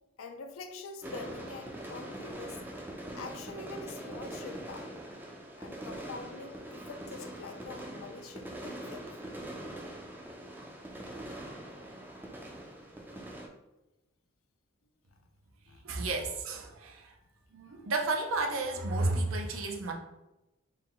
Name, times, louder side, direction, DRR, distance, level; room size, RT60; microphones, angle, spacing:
voice 1, 0.2-2.6 3.1-4.9 5.6-9.1 12.5-12.6 15.1-15.2 15.7-15.8 17.8-17.9, left 3 dB, 85° left, 6 dB, 0.5 m, -45 dB
sound 1, 1.0-13.5, right 1 dB, 10° right, 0.4 m, -43 dB
voice 2, 15.8-17.2 17.5-19.9, right 2 dB, 80° right, 3 dB, 0.6 m, -32 dB
4.0 x 2.2 x 3.8 m, 0.98 s
head